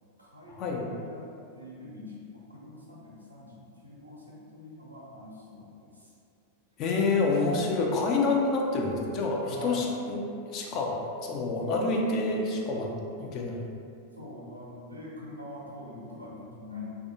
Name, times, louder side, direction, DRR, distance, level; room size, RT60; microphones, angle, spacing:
voice 1, 0.2-6.1 7.5-7.8 9.4-9.8 11.6-11.8 12.7-13.0 14.1-17.0, left 2 dB, 85° right, -5 dB, 0.6 m, -44 dB
voice 2, 6.8-10.2 10.5-12.9 13.2-13.7, left 3 dB, 35° left, -1 dB, 0.4 m, -27 dB
3.2 x 2.4 x 2.6 m, 2.5 s
figure-of-eight pair, 90°, 0 cm